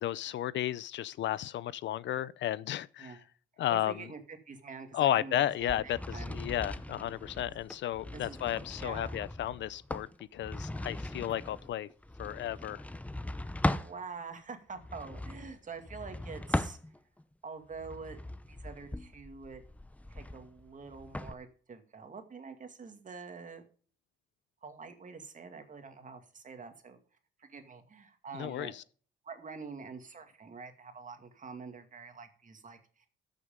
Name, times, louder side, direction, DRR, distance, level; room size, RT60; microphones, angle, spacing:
voice 1, 0.0-3.2 3.6-4.1 4.9-11.9 12.2-12.8 28.3-28.8, left 12 dB, 70° left, 0.5 m, -33 dB
voice 2, 3.7-6.4 7.5-7.6 8.1-8.4 8.8-9.2 13.7-16.8 17.4-18.2 18.5-19.6 20.1-23.6 24.6-27.0 27.4-28.7 29.2-33.1, right 5 dB, 40° right, 2.2 m, -46 dB
sound 1, 5.6-14.0 14.8-17.2 17.7-21.3, left 1 dB, 5° left, 0.7 m, -39 dB
13.5 x 6.6 x 5.2 m
cardioid pair, 90°, 20 cm